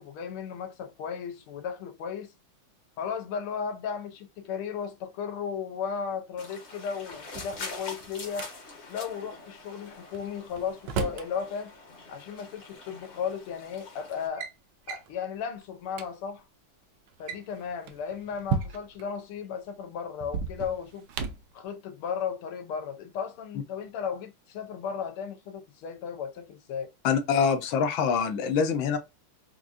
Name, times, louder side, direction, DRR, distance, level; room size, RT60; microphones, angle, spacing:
voice 1, 0.0-2.3 3.0-8.5 8.9-11.7 12.1-14.5 14.9-16.4 17.2-21.1 21.5-26.9, left 7 dB, 85° left, 1.6 m, -35 dB
sound 1, 6.4-14.3, left 3 dB, 45° left, 1.0 m, -44 dB
Drawer open or close, 7.1-8.5 10.1-11.3 12.6-12.7 13.5-13.8 14.1-14.5 14.9-15.1 15.6-15.7 15.9-16.1 17.1-19.1 20.2-21.5, right 6 dB, 75° right, 1.0 m, -35 dB
voice 2, 27.0-29.0, left 6 dB, 70° left, 1.4 m, -25 dB
4.8 x 2.5 x 2.5 m
omnidirectional pair, 2.4 m